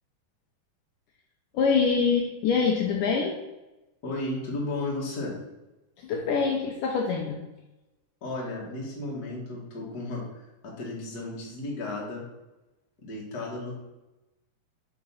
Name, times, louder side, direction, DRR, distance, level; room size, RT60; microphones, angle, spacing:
voice 1, 1.5-3.4 6.0-7.4, left 5 dB, 75° left, 0 dB, 2.1 m, -25 dB
voice 2, 4.0-5.4 8.2-12.2 13.0-13.7, left 2 dB, 40° left, -4 dB, 1.5 m, -34 dB
5.0 x 4.8 x 5.6 m, 1.0 s
omnidirectional pair, 4.2 m